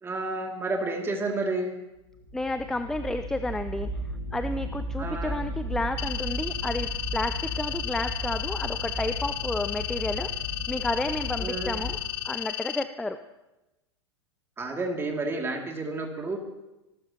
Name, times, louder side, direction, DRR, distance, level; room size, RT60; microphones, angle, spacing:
voice 1, 0.0-1.7 5.0-5.4 11.4-11.8 14.6-16.4, right 2 dB, 15° right, 2 dB, 2.6 m, -30 dB
sound 1, 2.1-12.0, right 1 dB, 70° right, 5.5 m, -35 dB
voice 2, 2.3-3.9 4.3-10.3 10.7-12.0 12.2-13.2, left 2 dB, 5° left, 10 dB, 0.5 m, -31 dB
sound 2, 6.0-12.8, left 15 dB, 40° left, 0.8 m, -34 dB
26.5 x 12.5 x 3.0 m, 0.98 s
figure-of-eight pair, 95°, 15 cm